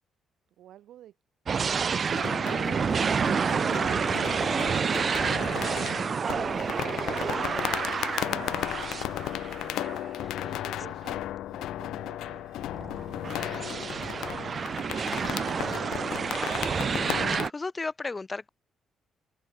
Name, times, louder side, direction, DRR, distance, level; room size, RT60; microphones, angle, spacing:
voice 1, 0.6-1.1 1.4-2.1 7.7-8.9 10.3-12.5 13.1-15.2, right 12 dB, 75° right, 8.0 m, -50 dB
sound 1, 1.5-10.5 11.1-11.2 12.6-17.5, right 6 dB, 45° right, 3.8 m, -29 dB
sound 2, 2.1-17.5, left 13 dB, 80° left, 1.9 m, -35 dB
voice 2, 17.3-18.5, left 3 dB, 25° left, 3.8 m, -35 dB
open air
cardioid pair, 90°, 0 cm